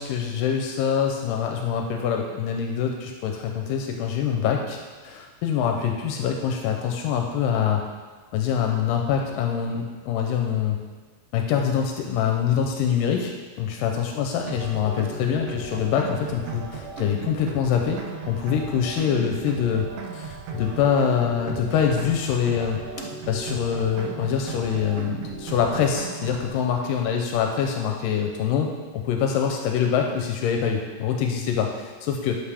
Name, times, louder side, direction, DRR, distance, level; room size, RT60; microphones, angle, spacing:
voice 1, 0.0-7.8 8.3-10.8 11.3-18.0 18.3-19.9 20.1-22.8 23.3-28.7 29.1-32.4, left 7 dB, 85° left, 2 dB, 2.3 m, -24 dB
sound 1, 14.5-26.5, right 3 dB, 85° right, 1.3 m, -36 dB
11.5 x 5.5 x 3.4 m, 1.4 s
omnidirectional pair, 3.9 m